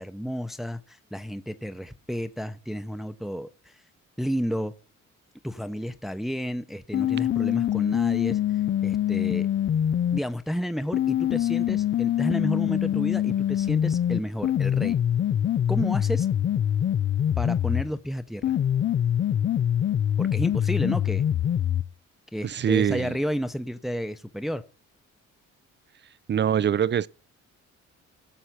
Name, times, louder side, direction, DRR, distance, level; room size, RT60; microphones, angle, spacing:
voice 1, 0.0-3.8 4.2-4.7 5.4-9.5 10.1-15.0 15.7-16.3 17.4-18.6 20.2-21.2 22.3-24.6, equal, ahead, 0.8 m, -31 dB
sound 1, 6.9-10.2 10.9-17.9 18.4-21.9, left 10 dB, 40° left, 0.5 m, -24 dB
voice 2, 22.4-23.2 26.3-27.1, right 9 dB, 35° right, 0.5 m, -23 dB
16.0 x 6.5 x 5.9 m
cardioid pair, 90°, 30 cm